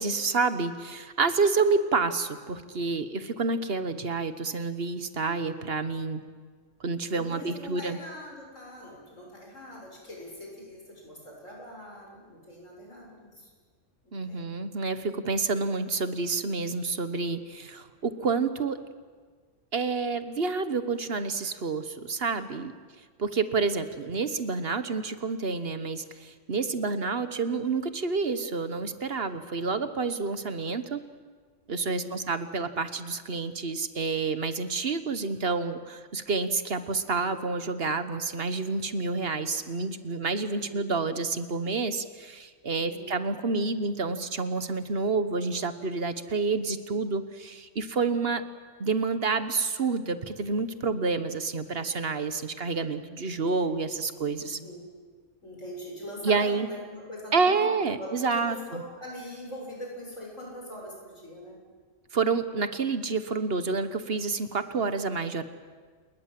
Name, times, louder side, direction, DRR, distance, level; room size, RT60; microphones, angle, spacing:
voice 1, 0.0-6.2 6.8-8.0 14.1-18.8 19.7-22.7 23.2-31.0 31.7-48.4 48.8-54.6 56.2-56.7 57.3-58.8 62.1-65.4, right 4 dB, 50° right, 11 dB, 1.4 m, -29 dB
voice 2, 7.0-13.5 14.0-14.4 26.6-26.9 31.8-32.2 40.5-40.9 42.8-43.2 54.5-54.9 55.4-61.6, equal, 75° left, -1 dB, 7.7 m, -42 dB
29.5 x 20.0 x 7.6 m, 1.5 s
omnidirectional pair, 1.3 m